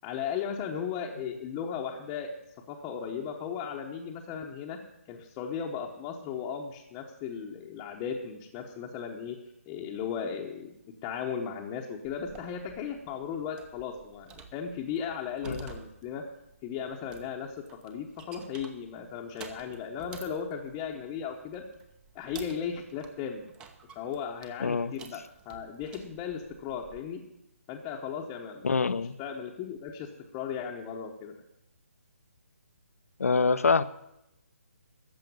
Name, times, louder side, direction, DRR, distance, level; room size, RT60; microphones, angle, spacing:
voice 1, 0.0-2.3 2.7-4.8 5.1-9.4 9.7-10.8 11.0-16.2 16.6-21.6 22.1-23.5 23.9-27.2 27.7-28.7 29.2-31.3, left 7 dB, 15° left, -2 dB, 1.0 m, -36 dB
sound 1, 12.0-27.1, right 5 dB, 10° right, 0.8 m, -51 dB
voice 2, 24.6-24.9 28.6-29.2 33.2-33.8, left 4 dB, 80° left, 15 dB, 0.8 m, -25 dB
14.0 x 6.5 x 9.3 m, 0.84 s
hypercardioid pair, 160°, 8 cm